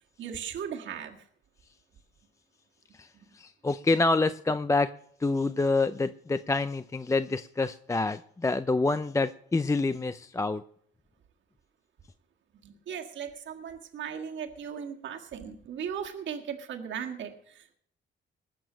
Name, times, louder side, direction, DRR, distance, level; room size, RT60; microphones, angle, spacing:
voice 1, 0.2-1.2 12.6-17.7, right 8 dB, 70° right, 2 dB, 1.7 m, -37 dB
voice 2, 3.3-4.9 5.2-10.6, left 3 dB, 15° left, 12 dB, 0.5 m, -27 dB
20.0 x 6.9 x 6.2 m, 0.66 s
cardioid pair, 90°, 20 cm